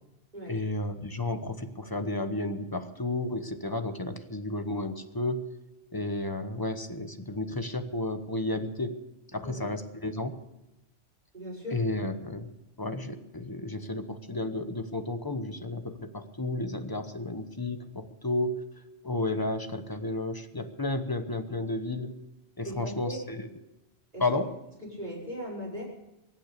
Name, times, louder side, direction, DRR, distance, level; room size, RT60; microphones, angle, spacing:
voice 1, 0.5-5.4 5.9-9.0 9.3-10.3 11.7-12.5 12.8-18.5 19.0-22.1 22.6-23.2 24.2-24.5, left 2 dB, 20° left, 8 dB, 1.1 m, -32 dB
voice 2, 11.3-11.8 22.6-23.2 24.1-24.2 24.8-25.8, equal, 40° right, -4 dB, 5.2 m, -38 dB
23.5 x 9.1 x 6.7 m, 0.95 s
omnidirectional pair, 1.1 m